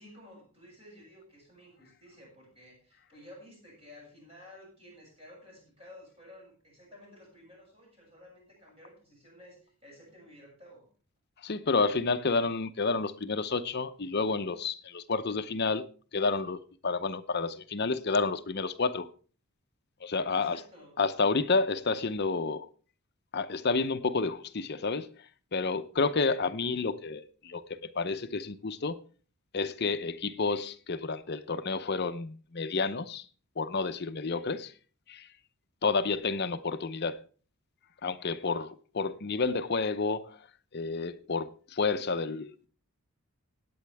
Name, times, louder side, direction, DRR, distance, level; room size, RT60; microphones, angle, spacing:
voice 1, 0.0-10.9 20.3-20.9, left 1 dB, 25° right, 7.2 m, -53 dB
voice 2, 11.4-15.9 16.1-19.1 20.0-20.6 21.0-22.7 23.3-29.0 29.5-33.2 33.6-34.7 35.1-35.3 35.8-37.2 38.0-40.4 40.7-42.7, left 4 dB, 50° left, 0.7 m, -30 dB
19.0 x 8.7 x 3.5 m
head